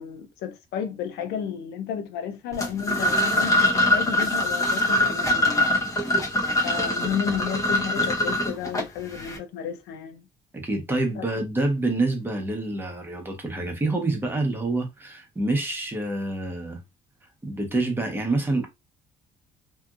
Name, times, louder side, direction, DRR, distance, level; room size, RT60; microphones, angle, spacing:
voice 1, 0.0-5.6 6.6-10.2 11.2-11.3, left 8 dB, 80° left, 0.5 m, -32 dB
sound 1, 2.5-9.4, left 1 dB, 20° left, 0.9 m, -23 dB
voice 2, 10.5-16.8 17.4-18.7, right 2 dB, 15° right, 1.0 m, -27 dB
2.8 x 2.5 x 2.4 m
cardioid pair, 110°, 17 cm